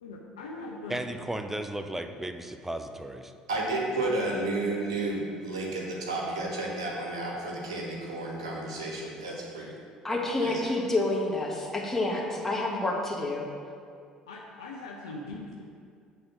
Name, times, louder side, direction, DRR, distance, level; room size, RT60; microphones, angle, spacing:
voice 1, 0.0-1.1 14.3-15.6, left 2 dB, 75° left, -1 dB, 0.5 m, -41 dB
voice 2, 0.9-3.3, right 1 dB, 10° right, 7 dB, 0.5 m, -35 dB
voice 3, 3.5-9.7 10.4-10.6, right 2 dB, 75° right, -2 dB, 1.2 m, -32 dB
voice 4, 10.0-13.5, left 2 dB, 10° left, -2 dB, 1.5 m, -28 dB
7.9 x 3.6 x 6.0 m, 2.3 s
figure-of-eight pair, 55°, 3 cm